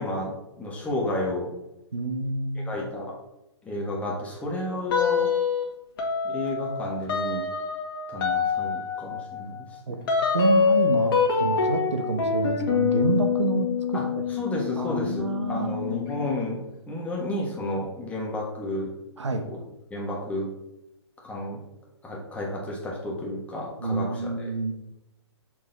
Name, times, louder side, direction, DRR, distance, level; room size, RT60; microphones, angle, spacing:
voice 1, 0.0-1.5 2.5-3.1 3.6-5.3 6.2-7.4 8.1-10.1 13.9-14.1 14.3-18.9 19.3-19.6 19.9-20.5 21.2-21.6 22.0-24.3, left 1 dB, 10° left, -2 dB, 1.4 m, -32 dB
voice 2, 1.9-2.9 9.9-10.0 10.3-14.2 14.8-15.8 19.2-19.4 23.8-24.7, right 4 dB, 80° right, 6 dB, 1.0 m, -28 dB
sound 1, 4.9-5.6 6.0-16.3, left 5 dB, 50° left, 1.6 m, -26 dB
6.2 x 4.5 x 3.9 m, 0.90 s
figure-of-eight pair, 125°, 15 cm